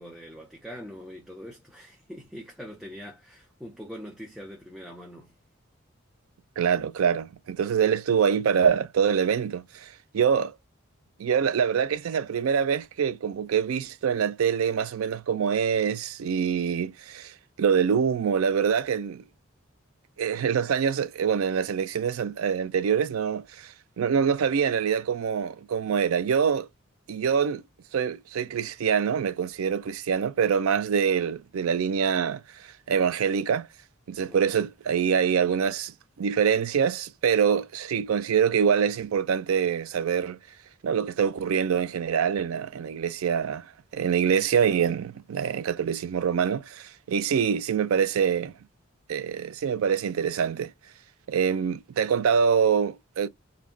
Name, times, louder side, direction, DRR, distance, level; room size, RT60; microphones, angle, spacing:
voice 1, 0.0-5.3 34.2-34.6, equal, ahead, 0.6 m, -43 dB
voice 2, 6.6-10.5 11.2-19.2 20.2-26.7 27.1-27.6 27.9-32.4 32.9-33.7 34.1-40.4 40.8-43.7 43.9-48.5 49.1-50.7 51.3-53.3, right 7 dB, 85° right, 0.4 m, -25 dB
2.7 x 2.2 x 3.7 m
head